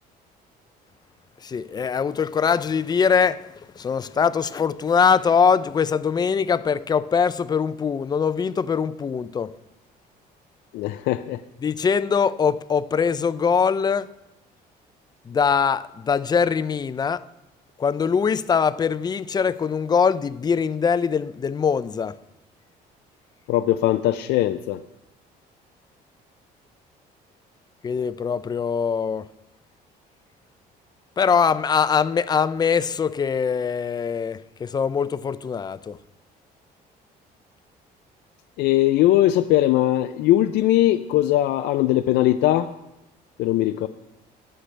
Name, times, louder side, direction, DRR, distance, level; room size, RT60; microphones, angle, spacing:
voice 1, 1.4-9.5 11.6-14.1 15.3-17.2 17.8-22.2 27.8-29.3 31.2-36.0, left 6 dB, 25° left, 0.4 m, -22 dB
voice 2, 10.7-11.4 23.5-24.8 38.6-42.7 43.4-43.9, left 14 dB, 80° left, 0.5 m, -20 dB
19.0 x 6.6 x 3.3 m
cardioid pair, 110°, 17 cm